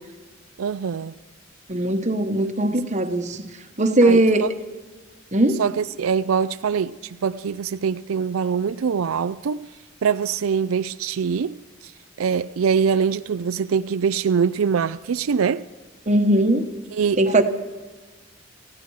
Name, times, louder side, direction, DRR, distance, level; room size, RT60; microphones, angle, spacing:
voice 1, 0.6-1.1 4.0-4.5 5.6-9.7 10.0-11.9 12.2-15.7 16.9-17.2, right 6 dB, 90° right, 0.4 m, -23 dB
voice 2, 1.7-3.4 3.8-4.5 5.3-5.6 16.1-16.7 17.2-17.4, right 1 dB, 35° right, 1.1 m, -19 dB
19.5 x 15.0 x 4.8 m
head